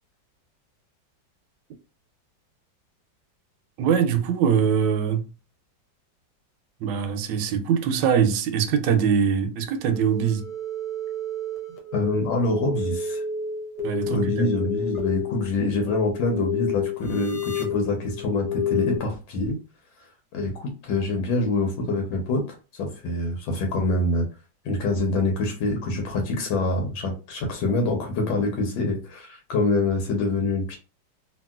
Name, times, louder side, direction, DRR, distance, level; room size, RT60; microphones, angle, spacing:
voice 1, 3.8-5.3 6.8-10.5 13.8-14.7, right 7 dB, 75° right, 1.2 m, -23 dB
sound 1, 9.8-19.0, left 4 dB, 65° left, 1.3 m, -30 dB
voice 2, 11.9-13.2 14.1-19.6 20.3-24.3 24.6-30.8, left 2 dB, 85° left, 1.5 m, -25 dB
3.0 x 2.7 x 2.3 m
omnidirectional pair, 2.0 m